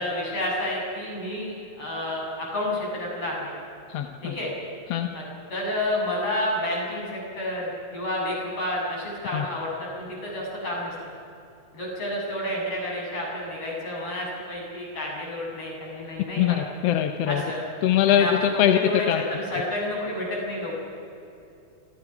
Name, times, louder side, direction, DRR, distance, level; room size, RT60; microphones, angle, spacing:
voice 1, 0.0-3.5 4.2-4.5 5.1-5.2 5.5-10.9 11.7-16.6 17.3-17.7 18.1-20.8, left 1 dB, 45° left, -3 dB, 8.7 m, -30 dB
voice 2, 3.9-4.4 4.9-5.1 9.3-9.5 16.4-17.4 17.8-18.8 19.1-19.2, left 11 dB, 65° left, 6 dB, 1.8 m, -22 dB
28.5 x 26.5 x 6.1 m, 2.6 s
omnidirectional pair, 3.5 m